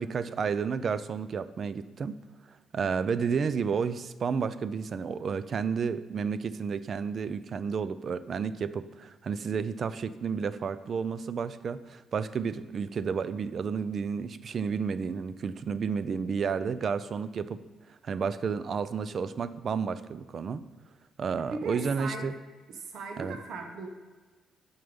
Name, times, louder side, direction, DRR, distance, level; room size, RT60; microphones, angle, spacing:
voice 1, 0.0-2.1 2.7-17.6 18.0-20.6 21.2-22.3 23.2-23.4, right 6 dB, 50° right, 14 dB, 0.4 m, -31 dB
voice 2, 21.4-22.3 22.7-23.9, right 3 dB, 70° right, 4 dB, 1.1 m, -38 dB
7.8 x 5.6 x 5.2 m, 1.3 s
cardioid pair, 90°, 0 cm